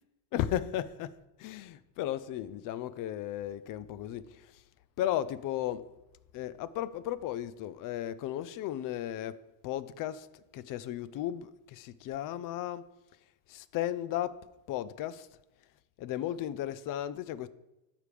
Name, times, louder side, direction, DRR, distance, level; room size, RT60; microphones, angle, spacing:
voice 1, 0.3-4.6 5.0-5.9 6.3-10.3 10.5-12.9 13.5-15.3 16.0-17.5, left 12 dB, 45° left, 0.5 m, -35 dB
14.0 x 5.0 x 3.4 m
cardioid pair, 130°, 46 cm